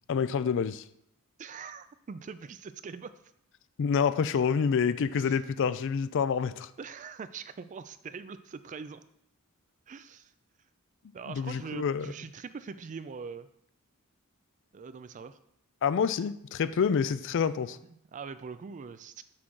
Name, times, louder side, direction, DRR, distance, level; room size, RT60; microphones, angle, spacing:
voice 1, 0.1-0.8 3.8-6.7 11.3-12.1 15.8-17.8, left 6 dB, 60° left, 15 dB, 0.3 m, -27 dB
voice 2, 1.4-3.1 5.2-5.4 6.8-9.0 9.9-10.3 11.1-13.5 14.7-15.4 18.1-19.2, right 5 dB, 35° right, 12 dB, 0.3 m, -42 dB
6.2 x 5.9 x 3.8 m, 0.75 s
head